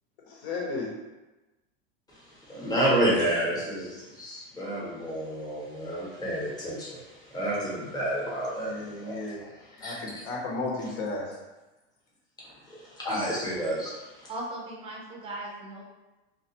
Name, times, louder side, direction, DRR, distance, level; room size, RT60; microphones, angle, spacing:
voice 1, 0.4-0.9 8.6-9.5 9.8-11.3, left 3 dB, 65° left, -2 dB, 0.9 m, -33 dB
voice 2, 2.1-9.4 9.7-10.2 12.6-14.3, right 1 dB, 10° left, -6 dB, 0.8 m, -30 dB
voice 3, 14.3-15.8, right 1 dB, 15° right, -2 dB, 0.5 m, -38 dB
2.3 x 2.2 x 2.8 m, 1.1 s
supercardioid pair, 125°, 34 cm